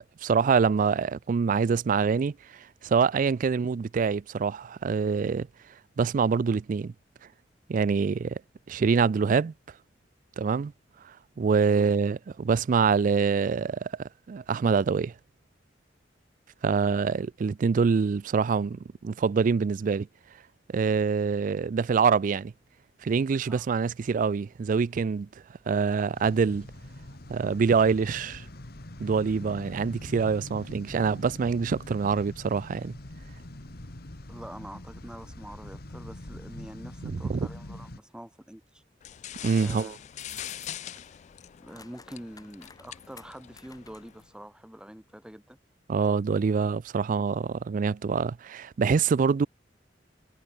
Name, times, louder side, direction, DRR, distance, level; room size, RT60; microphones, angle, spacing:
voice 1, 0.2-5.5 6.0-6.9 7.7-8.4 8.7-9.5 10.4-10.7 11.4-15.1 16.6-20.1 20.7-22.5 23.0-25.3 25.7-26.7 27.3-28.5 29.0-33.0 37.0-37.5 39.4-39.9 45.9-49.5, right 5 dB, 45° right, 0.3 m, -25 dB
sound 1, 26.1-38.0, left 1 dB, 60° left, 2.0 m, -43 dB
voice 2, 34.3-38.8 39.6-40.0 40.3-40.4 41.6-45.6, equal, 5° right, 0.6 m, -45 dB
sound 2, 39.0-44.3, left 11 dB, 40° left, 0.3 m, -43 dB
sound 3, 40.1-41.1 41.3-44.3, left 5 dB, 20° left, 2.9 m, -51 dB
head